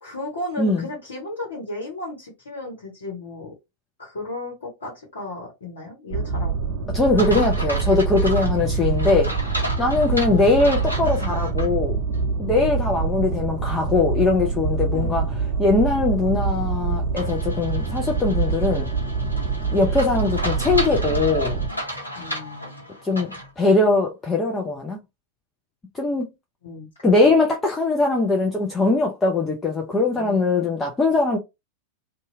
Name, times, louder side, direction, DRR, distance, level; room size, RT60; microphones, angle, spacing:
voice 1, 0.0-3.5 4.0-6.7 10.0-10.2 14.9-15.3 22.2-22.9 26.6-27.1 30.1-30.4, left 2 dB, 65° left, 1.1 m, -35 dB
voice 2, 0.6-0.9 6.9-9.3 9.8-11.9 12.4-15.3 15.6-18.9 19.7-21.6 23.0-25.0 25.9-26.3 27.0-31.4, left 3 dB, 15° left, 0.5 m, -21 dB
sound 1, 6.1-21.7, right 4 dB, 35° right, 0.6 m, -25 dB
sound 2, 7.2-11.7 12.1-12.2 17.2-23.5, equal, 90° left, 0.8 m, -33 dB
2.7 x 2.3 x 2.7 m
figure-of-eight pair, 90°, 0 cm